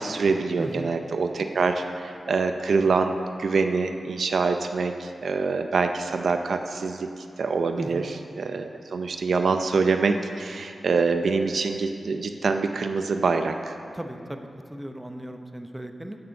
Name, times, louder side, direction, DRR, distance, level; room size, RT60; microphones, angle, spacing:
voice 1, 0.0-3.1 3.4-7.1 7.4-8.1 8.4-13.8, right 4 dB, 75° right, 7 dB, 0.6 m, -25 dB
voice 2, 0.6-0.9 7.8-8.1 13.9-16.2, right 1 dB, 15° right, 5 dB, 0.9 m, -37 dB
11.5 x 6.8 x 6.5 m, 2.6 s
cardioid pair, 65°, 0 cm